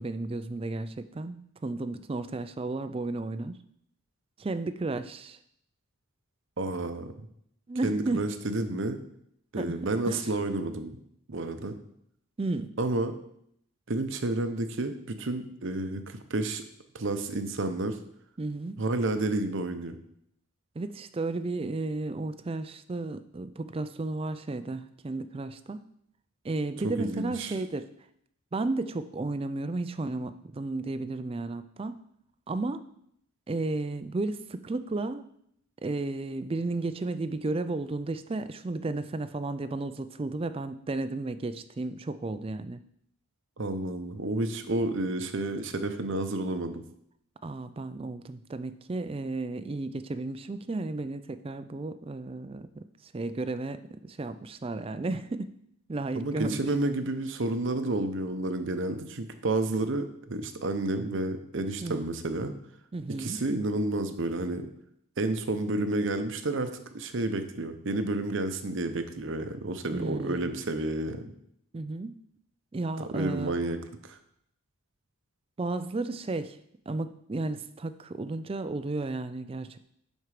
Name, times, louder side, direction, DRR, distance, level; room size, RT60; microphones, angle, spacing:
voice 1, 0.0-3.6 4.4-5.4 7.7-8.2 9.6-9.8 10.1-10.3 12.4-12.8 18.4-18.8 20.8-25.8 26.4-27.9 28.5-32.0 32.5-32.8 33.5-35.2 35.8-42.8 47.4-55.5 55.9-56.6 61.8-62.0 62.9-63.4 69.9-70.6 71.7-72.2 72.7-73.5 75.6-76.6 76.9-79.8, right 2 dB, 25° right, 12 dB, 0.3 m, -33 dB
voice 2, 6.6-7.3 7.8-9.0 9.5-11.0 11.3-11.8 12.8-13.1 13.9-16.6 16.9-18.0 18.8-19.9 26.8-27.5 43.6-46.8 56.2-62.5 63.2-64.7 65.2-71.3 73.1-74.2, right 2 dB, 55° right, 8 dB, 0.7 m, -30 dB
10.5 x 4.5 x 4.9 m, 0.72 s
head